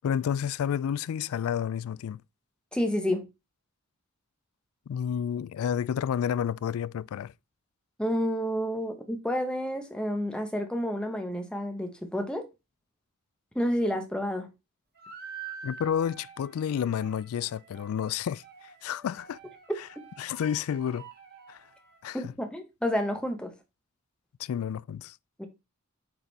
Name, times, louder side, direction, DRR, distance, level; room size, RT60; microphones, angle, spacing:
voice 1, 0.0-2.2 4.9-7.3 15.6-18.4 18.8-19.4 19.8-19.9 20.2-21.1 21.5-21.6 22.0-22.3 24.4-25.2, left 8 dB, 75° left, 0.3 m, -30 dB
voice 2, 2.7-3.3 8.0-12.5 13.5-14.5 22.1-23.5 25.4-25.5, equal, 5° left, 1.1 m, -30 dB
sound 1, 15.0-22.0, right 6 dB, 45° right, 1.4 m, -47 dB
7.8 x 4.0 x 4.1 m
head